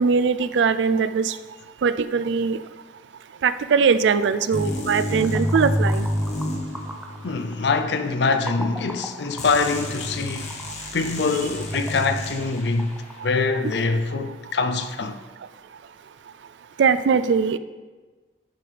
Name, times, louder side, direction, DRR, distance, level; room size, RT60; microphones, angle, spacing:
voice 1, 0.0-1.4 1.8-2.6 3.4-6.0 16.8-17.6, right 5 dB, 85° right, 0.4 m, -21 dB
sound 1, 4.5-7.4 9.4-12.8, left 1 dB, 40° left, 1.1 m, -28 dB
sound 2, 5.0-13.9, equal, 5° right, 0.5 m, -41 dB
voice 2, 7.2-10.5 10.9-12.9 13.2-15.2, left 4 dB, 70° left, 0.5 m, -24 dB
11.0 x 5.6 x 3.3 m
head